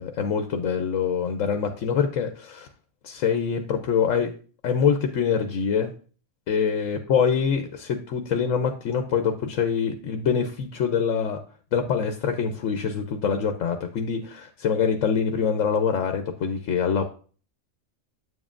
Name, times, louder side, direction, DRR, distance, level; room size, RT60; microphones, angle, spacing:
voice 1, 0.0-2.7 3.0-4.3 4.6-5.9 6.5-11.4 11.7-17.0, left 6 dB, 85° left, 6 dB, 1.1 m, -24 dB
8.1 x 7.3 x 2.5 m, 0.41 s
omnidirectional pair, 1.3 m